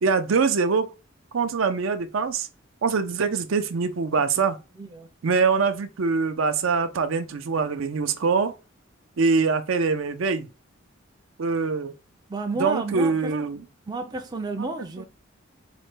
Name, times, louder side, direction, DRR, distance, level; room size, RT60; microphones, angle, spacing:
voice 1, 0.0-0.9 1.3-2.5 2.8-4.6 5.2-8.5 9.2-10.5 11.4-11.9 12.6-13.6 14.6-14.7 15.0-15.1, right 5 dB, 75° right, 0.5 m, -23 dB
voice 2, 12.3-13.4 13.9-15.0, right 3 dB, 20° right, 0.4 m, -31 dB
4.1 x 2.2 x 3.2 m
head